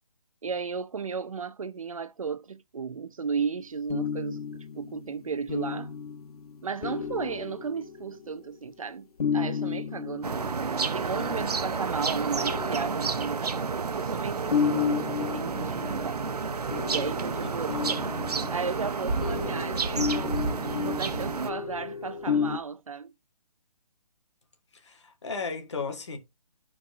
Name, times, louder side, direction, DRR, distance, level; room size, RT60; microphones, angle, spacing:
voice 1, 0.4-4.4 4.7-5.9 6.6-10.4 10.8-16.2 16.9-18.0 18.5-20.5 20.8-23.1, right 5 dB, 60° right, 0.7 m, -34 dB
sound 1, 3.9-8.5 9.2-11.8 12.4-13.8 14.5-22.6, left 6 dB, 70° left, 0.9 m, -33 dB
sound 2, 10.2-21.5, right 4 dB, 75° right, 1.1 m, -30 dB
voice 2, 17.4-17.9 24.7-26.2, left 4 dB, 45° left, 2.0 m, -36 dB
13.0 x 4.6 x 2.7 m
hypercardioid pair, 180°, 20 cm